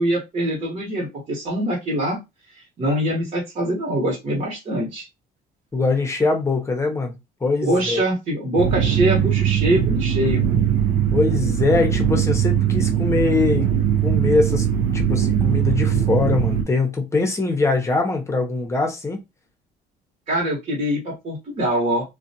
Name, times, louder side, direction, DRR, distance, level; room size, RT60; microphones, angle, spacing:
voice 1, 0.0-2.2 2.8-5.1 7.6-10.4 20.3-22.0, right 1 dB, 40° right, 1.2 m, -23 dB
voice 2, 5.7-7.1 7.4-8.0 11.1-13.7 14.0-14.7 14.9-19.2, left 3 dB, 15° left, 0.8 m, -22 dB
sound 1, 8.6-16.6, right 9 dB, 80° right, 0.6 m, -20 dB
2.4 x 2.2 x 2.7 m
cardioid pair, 110°, 17 cm